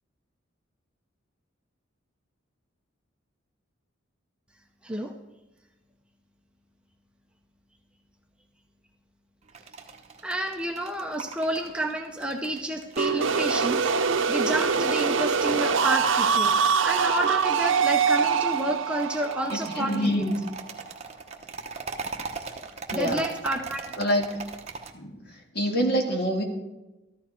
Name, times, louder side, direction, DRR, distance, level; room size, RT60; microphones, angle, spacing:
voice 1, 4.8-5.1 10.2-13.9 14.3-16.5 16.8-20.3 22.9-23.8, right 1 dB, 5° right, 2 dB, 0.7 m, -30 dB
sound 1, 9.4-24.9, right 4 dB, 30° right, 1.0 m, -41 dB
sound 2, 13.0-20.7, right 6 dB, 65° right, 0.7 m, -24 dB
voice 2, 19.8-20.3 22.9-23.2 24.0-24.3 24.9-26.4, equal, 50° left, 2 dB, 1.9 m, -26 dB
14.0 x 12.5 x 4.4 m, 1.0 s
head